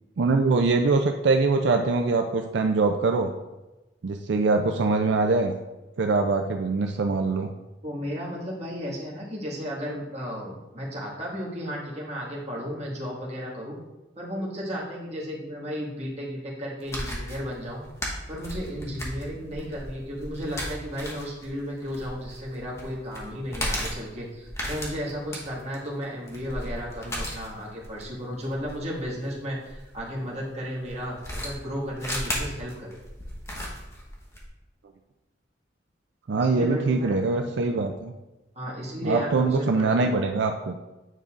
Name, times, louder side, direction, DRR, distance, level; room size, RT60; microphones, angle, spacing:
voice 1, 0.2-3.3 4.0-5.5 6.0-7.5 36.3-38.1 39.0-40.7, right 3 dB, 75° right, 4 dB, 0.4 m, -23 dB
voice 2, 7.8-13.8 14.1-17.8 18.3-33.0 36.4-37.2 38.5-40.1, equal, 35° right, -5 dB, 1.7 m, -34 dB
sound 1, 16.8-30.0 30.8-34.4, equal, 15° left, 1.1 m, -35 dB
9.1 x 5.3 x 2.5 m, 1.1 s
head